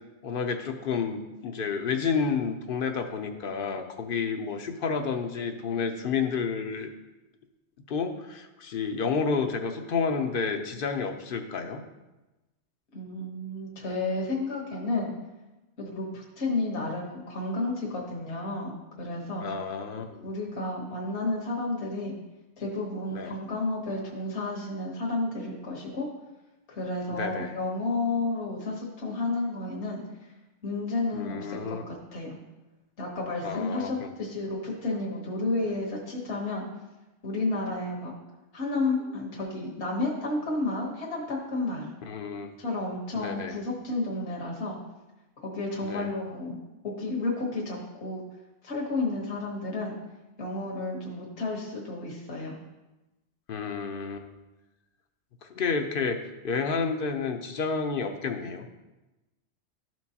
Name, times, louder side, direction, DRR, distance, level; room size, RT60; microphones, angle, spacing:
voice 1, 0.2-6.9 7.9-11.8 19.4-20.2 23.1-23.3 27.1-27.5 31.1-31.8 33.4-34.1 42.1-42.5 43.2-43.5 45.8-46.1 53.5-54.3 55.4-56.2 56.4-58.7, left 5 dB, 55° left, 6 dB, 0.8 m, -30 dB
voice 2, 12.9-15.1 15.8-19.5 20.2-22.1 22.6-26.1 26.7-30.0 30.6-32.4 33.0-36.6 37.2-38.1 38.5-41.9 42.6-44.8 45.4-46.6 46.8-48.2 48.6-49.9 50.4-52.6, left 2 dB, 70° left, -2 dB, 1.5 m, -31 dB
12.5 x 4.5 x 2.8 m, 1.1 s
omnidirectional pair, 1.2 m